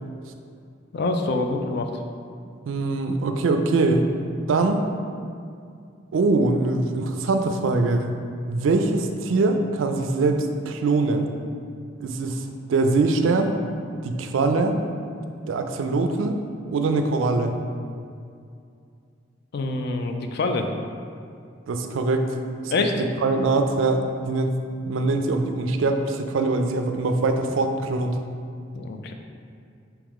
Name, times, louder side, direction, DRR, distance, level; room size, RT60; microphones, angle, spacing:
voice 1, 0.9-1.9 19.5-20.7 22.7-23.0 28.7-29.1, left 3 dB, 55° left, 5 dB, 0.4 m, -25 dB
voice 2, 2.7-4.1 4.5-4.8 6.1-8.1 8.5-11.3 12.0-12.4 12.7-13.5 14.0-14.8 15.5-16.4 16.7-17.5 21.7-22.3 22.6-22.7 23.2-24.6 24.8-28.2, right 3 dB, 75° right, 6 dB, 0.4 m, -22 dB
4.7 x 3.0 x 3.6 m, 2.4 s
head